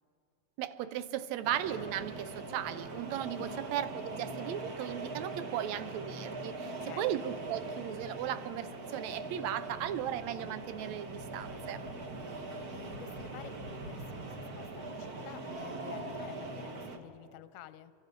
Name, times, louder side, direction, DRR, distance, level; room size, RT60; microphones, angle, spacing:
voice 1, 0.6-11.8, right 11 dB, 75° right, 13 dB, 1.7 m, -36 dB
sound 1, 1.4-17.0, right 2 dB, 45° right, 1.2 m, -42 dB
voice 2, 6.6-7.1 12.1-17.9, left 12 dB, 75° left, 13 dB, 1.8 m, -51 dB
28.5 x 23.5 x 5.3 m, 2.4 s
omnidirectional pair, 3.7 m